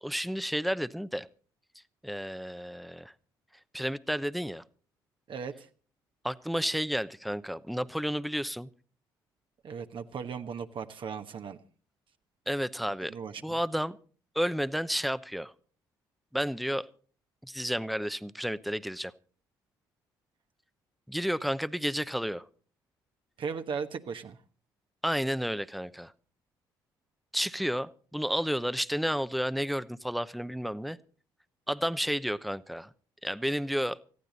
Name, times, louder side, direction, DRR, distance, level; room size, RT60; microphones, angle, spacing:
voice 1, 0.0-1.3 2.0-3.1 3.7-4.6 6.2-8.7 12.5-13.1 13.4-14.0 14.3-15.5 16.3-16.9 17.4-19.1 21.1-22.4 25.0-26.1 27.3-31.0 31.7-32.9 33.2-34.0, equal, ahead, 0.8 m, -31 dB
voice 2, 5.3-5.7 9.6-11.6 13.1-13.6 23.4-24.4, right 6 dB, 50° right, 1.2 m, -37 dB
19.5 x 14.5 x 4.1 m
hypercardioid pair, 55°, 11 cm